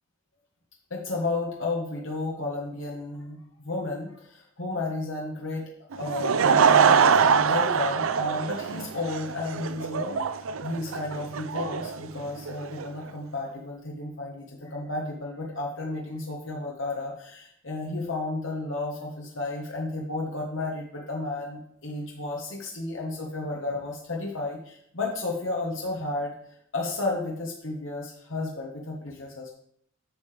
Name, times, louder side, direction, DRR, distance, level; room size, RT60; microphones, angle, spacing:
voice 1, 0.9-5.7 6.0-10.2 10.6-26.3 26.7-29.5, left 2 dB, 65° left, -2 dB, 1.4 m, -32 dB
Laughter / Crowd, 5.9-12.9, right 6 dB, 80° right, 0.5 m, -23 dB
9.4 x 6.5 x 3.4 m, 0.68 s
head